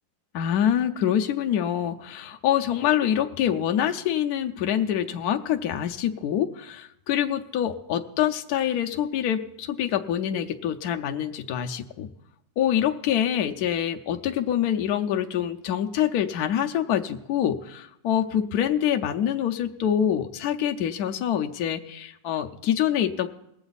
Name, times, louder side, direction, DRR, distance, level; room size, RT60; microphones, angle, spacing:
voice 1, 0.3-12.1 12.6-23.3, left 10 dB, 70° left, 5 dB, 1.0 m, -25 dB
19.5 x 7.7 x 4.0 m, 0.84 s
omnidirectional pair, 2.0 m